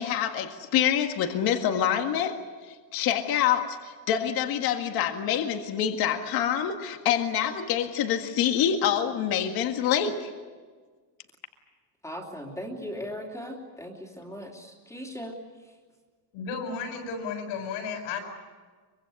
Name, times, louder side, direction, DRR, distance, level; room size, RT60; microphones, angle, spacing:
voice 1, 0.0-10.3, left 9 dB, 45° left, 5 dB, 1.9 m, -26 dB
voice 2, 12.0-15.8, equal, 5° left, 0 dB, 3.0 m, -39 dB
voice 3, 16.3-18.2, left 5 dB, 70° left, 3 dB, 7.3 m, -33 dB
24.5 x 24.0 x 8.5 m, 1.5 s
cardioid pair, 170°, 48 cm